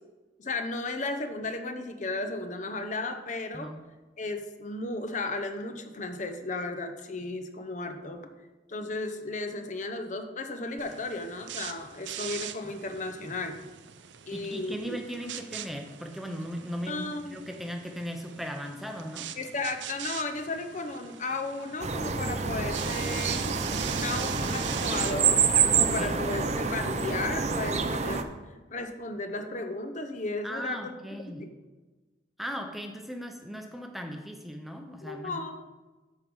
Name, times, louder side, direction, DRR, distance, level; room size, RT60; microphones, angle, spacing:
voice 1, 0.4-3.7 4.2-8.3 8.7-13.6 14.2-15.0 16.9-17.4 19.4-23.4 23.9-25.4 25.7-28.3 28.7-31.5 35.0-35.6, left 2 dB, 40° left, 7 dB, 0.8 m, -34 dB
sound 1, 10.8-27.2, right 10 dB, 85° right, 0.6 m, -42 dB
voice 2, 14.3-19.3 25.8-26.2 30.4-31.5 32.4-35.4, equal, ahead, 3 dB, 0.7 m, -38 dB
sound 2, 21.8-28.2, right 5 dB, 40° right, 0.6 m, -27 dB
13.5 x 4.7 x 5.4 m, 1.2 s
head